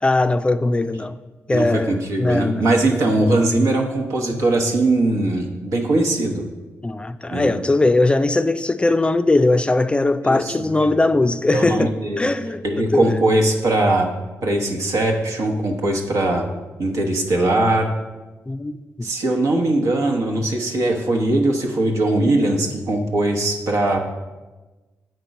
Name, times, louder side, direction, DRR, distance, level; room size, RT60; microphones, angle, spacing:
voice 1, 0.0-1.2 1.5-2.7 6.8-13.2 18.5-19.1, left 2 dB, 20° left, 0.3 m, -20 dB
voice 2, 1.5-6.4 7.3-7.5 10.2-10.9 11.5-12.2 12.6-14.1 14.4-16.4 16.8-17.9 19.0-24.0, right 2 dB, 80° right, 1.1 m, -20 dB
7.7 x 4.5 x 5.3 m
cardioid pair, 65°, 5 cm